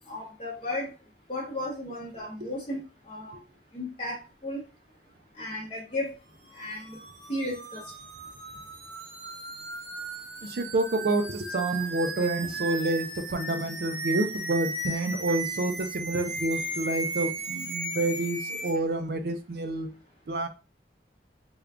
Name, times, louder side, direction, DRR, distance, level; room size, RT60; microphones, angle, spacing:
voice 1, 0.1-0.9 1.3-3.4 3.7-4.6 5.4-6.1 6.5-7.0 7.3-7.8, left 1 dB, 35° left, -2 dB, 0.6 m, -34 dB
sound 1, 6.5-18.8, right 2 dB, 85° right, 1.0 m, -36 dB
voice 2, 10.4-19.9 20.3-20.5, right 2 dB, 60° right, 7 dB, 0.4 m, -28 dB
3.6 x 2.3 x 3.4 m, 0.32 s
head